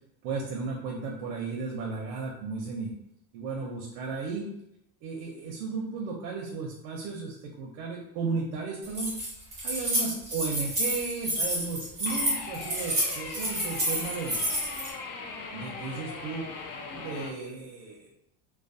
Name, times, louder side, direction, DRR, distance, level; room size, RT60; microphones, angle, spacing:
voice 1, 0.2-2.9 3.3-4.4 5.0-9.1 9.6-14.4 15.5-16.5 16.9-18.1, right 4 dB, 90° right, -1 dB, 0.7 m, -34 dB
Keys jangling, 8.8-14.9, equal, 15° right, 0.4 m, -29 dB
sound 1, 12.1-17.3, left 4 dB, 65° left, 0.6 m, -39 dB
2.3 x 2.2 x 2.6 m, 0.80 s
cardioid pair, 180°, 50 cm